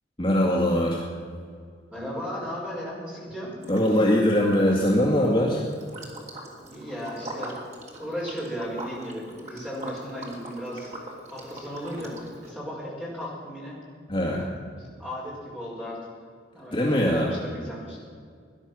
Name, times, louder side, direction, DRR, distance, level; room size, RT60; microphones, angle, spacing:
voice 1, 0.2-1.0 3.7-5.6 14.1-14.4 16.7-17.3, left 1 dB, 25° left, -3 dB, 1.9 m, -21 dB
voice 2, 1.9-3.5 6.6-7.6 8.0-10.9 11.3-13.8 14.3-16.1 16.5-18.0, equal, 5° right, -6 dB, 5.6 m, -35 dB
Liquid, 3.6-4.3 4.5-12.5, right 1 dB, 35° right, 3.0 m, -41 dB
18.0 x 11.5 x 6.2 m, 2.1 s
head